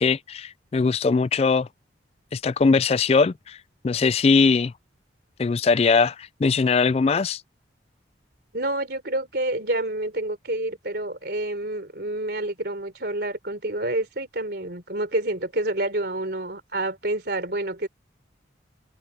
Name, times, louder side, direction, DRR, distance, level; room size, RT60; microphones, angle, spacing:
voice 1, 0.0-1.7 2.3-3.6 3.8-4.7 5.4-7.4, left 4 dB, 35° left, 0.3 m, -21 dB
voice 2, 8.5-17.9, right 1 dB, 60° right, 3.8 m, -28 dB
open air
head